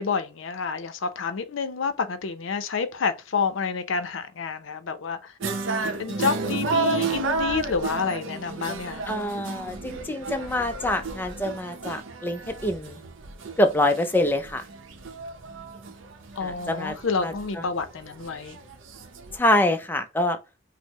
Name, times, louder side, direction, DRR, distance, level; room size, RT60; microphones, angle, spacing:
voice 1, 0.0-5.3 6.0-9.0 16.4-18.6, left 5 dB, 70° left, 0.5 m, -29 dB
sound 1, 5.4-19.4, right 3 dB, 70° right, 0.7 m, -32 dB
voice 2, 9.1-13.0 13.6-14.6 16.4-17.0 17.2-17.7 19.3-20.4, left 1 dB, 10° left, 0.3 m, -25 dB
4.5 x 2.0 x 2.9 m
head